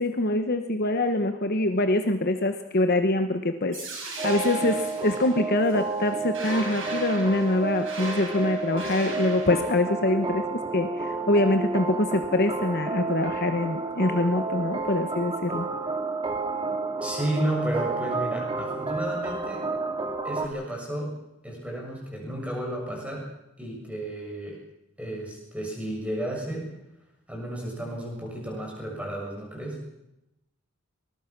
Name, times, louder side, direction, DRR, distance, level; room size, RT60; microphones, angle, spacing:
voice 1, 0.0-15.7, left 2 dB, 45° left, 7 dB, 1.2 m, -25 dB
sound 1, 3.7-9.7, right 3 dB, 55° right, 6.4 m, -39 dB
sound 2, 4.2-20.5, right 3 dB, 20° right, 2.3 m, -31 dB
voice 2, 17.0-19.7 20.2-21.2 21.4-23.3 23.6-24.6 25.0-26.7 27.3-29.8, right 1 dB, 5° right, -1 dB, 7.1 m, -32 dB
24.0 x 20.5 x 6.1 m, 0.90 s
head